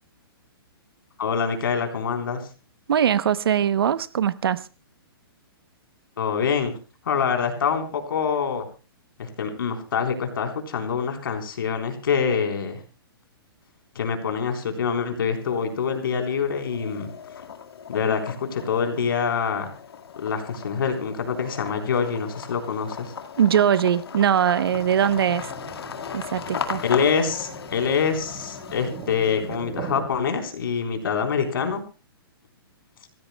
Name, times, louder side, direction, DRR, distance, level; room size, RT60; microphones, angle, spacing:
voice 1, 1.2-2.4 6.2-6.7 7.1-8.7 9.2-12.8 14.0-17.1 17.9-19.7 20.2-23.1 26.8-31.8, left 6 dB, 65° left, 5 dB, 3.8 m, -25 dB
voice 2, 2.9-4.6 23.4-25.5 26.1-26.8, right 9 dB, 70° right, 15 dB, 0.8 m, -21 dB
sound 1, 15.3-16.0 16.4-29.9, left 7 dB, 80° left, 1.8 m, -37 dB
sound 2, 24.7-30.1, right 6 dB, 20° right, 1.3 m, -40 dB
26.0 x 16.0 x 2.2 m, 0.32 s
hypercardioid pair, 175°, 13 cm